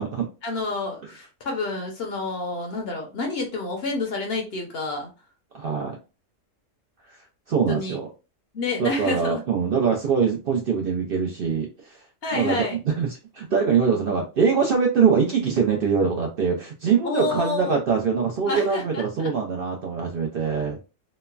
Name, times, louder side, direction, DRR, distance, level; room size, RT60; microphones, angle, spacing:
voice 1, 0.4-5.1 7.7-8.0 8.5-9.4 12.2-12.8 17.0-17.8 18.5-19.3, left 3 dB, 60° left, 2 dB, 0.8 m, -29 dB
voice 2, 5.5-6.0 7.1-7.2 7.5-8.1 8.8-12.0 12.3-20.8, right 6 dB, 60° right, 1 dB, 0.6 m, -23 dB
3.0 x 2.1 x 2.3 m, 0.30 s
omnidirectional pair, 1.3 m